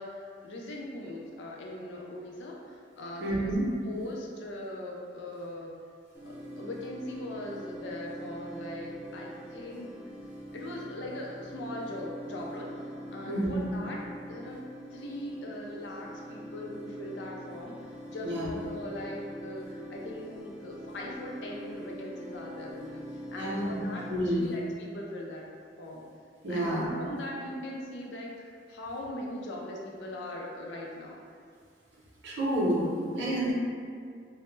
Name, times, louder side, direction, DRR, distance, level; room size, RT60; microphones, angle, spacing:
voice 1, 0.0-3.5 3.8-5.8 6.2-9.9 10.5-12.7 13.1-14.6 14.9-23.0 23.3-25.4 25.8-26.0 26.5-31.2, left 1 dB, 75° left, -2 dB, 0.4 m, -40 dB
voice 2, 3.2-3.6 13.3-13.6 18.2-18.5 23.4-23.7 24.1-24.5 26.4-26.9 32.2-33.5, right 1 dB, 80° right, -6 dB, 0.6 m, -29 dB
sound 1, 6.1-24.1, equal, 10° right, 0.4 m, -43 dB
2.0 x 2.0 x 3.1 m, 2.1 s
head